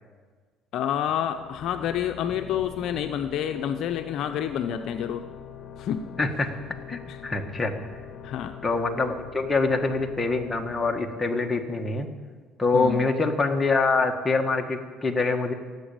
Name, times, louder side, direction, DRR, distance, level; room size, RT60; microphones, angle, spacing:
voice 1, 0.7-5.3 5.8-6.1 7.1-7.2 8.2-8.6 12.7-13.0, left 9 dB, 60° left, 7 dB, 0.7 m, -28 dB
sound 1, 1.1-12.5, left 7 dB, 45° left, 1.6 m, -43 dB
voice 2, 6.2-6.5 6.9-7.7 8.6-12.1 12.6-15.5, left 3 dB, 15° left, 3 dB, 1.7 m, -25 dB
16.5 x 8.1 x 8.8 m, 1.5 s
cardioid pair, 100°, 0 cm